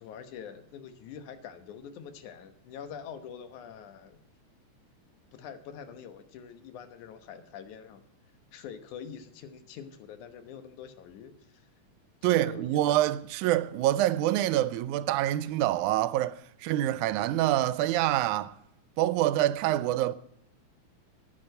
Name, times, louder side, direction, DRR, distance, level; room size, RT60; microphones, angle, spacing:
voice 1, 0.0-4.2 5.3-8.0 8.5-11.7 12.2-13.0, left 7 dB, 85° left, 2.6 m, -45 dB
voice 2, 12.2-18.5 19.0-20.1, right 14 dB, 90° right, 2.0 m, -26 dB
9.7 x 9.2 x 7.9 m
omnidirectional pair, 3.4 m